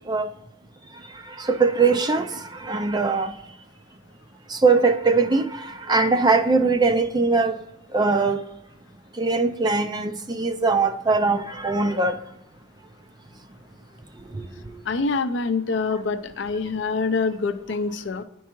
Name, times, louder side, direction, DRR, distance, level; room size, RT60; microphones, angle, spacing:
voice 1, 1.0-3.4 4.5-7.6 7.9-8.4 9.1-12.2 14.3-14.4, right 4 dB, 20° right, 0.4 m, -21 dB
voice 2, 14.9-18.2, left 4 dB, 60° left, 0.5 m, -25 dB
10.0 x 4.6 x 2.9 m
head